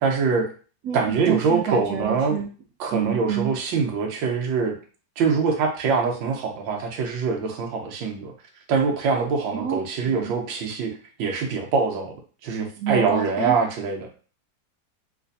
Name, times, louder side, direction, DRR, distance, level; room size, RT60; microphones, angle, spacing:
voice 1, 0.0-0.5 0.9-2.4 2.8-4.8 5.2-8.3 8.7-10.9 11.2-12.2 12.4-14.1, right 5 dB, 85° right, 2 dB, 1.4 m, -24 dB
voice 2, 0.8-2.5 2.9-3.5 9.5-9.8 10.1-10.3 12.8-13.5, right 8 dB, 70° right, -1 dB, 1.0 m, -27 dB
3.3 x 3.2 x 2.6 m, 0.39 s
omnidirectional pair, 2.0 m